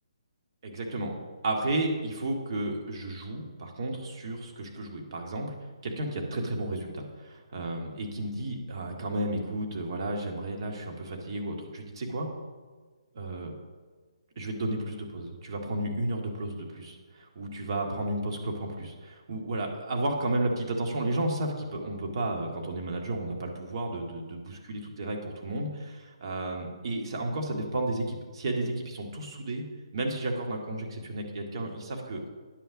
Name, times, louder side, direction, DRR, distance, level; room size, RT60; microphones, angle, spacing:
voice 1, 0.6-1.2 1.4-5.5 5.8-12.3 13.1-13.5 14.4-29.6 29.9-32.2, right 1 dB, 50° right, 1 dB, 1.9 m, -32 dB
9.7 x 5.9 x 7.0 m, 1.5 s
figure-of-eight pair, 140°, 3 cm